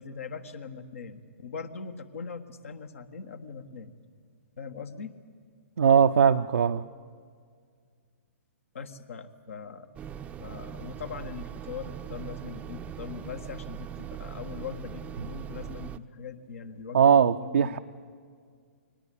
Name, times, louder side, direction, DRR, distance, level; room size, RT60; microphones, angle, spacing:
voice 1, 0.0-3.9 4.6-5.2 8.7-9.9 10.4-17.8, left 5 dB, 65° left, 8 dB, 1.6 m, -41 dB
voice 2, 5.8-6.8 16.9-17.8, right 7 dB, 70° right, 5 dB, 0.6 m, -20 dB
sound 1, 10.0-16.0, right 9 dB, 15° right, 0.6 m, -40 dB
23.0 x 19.0 x 8.5 m, 2.1 s
figure-of-eight pair, 120°, 8 cm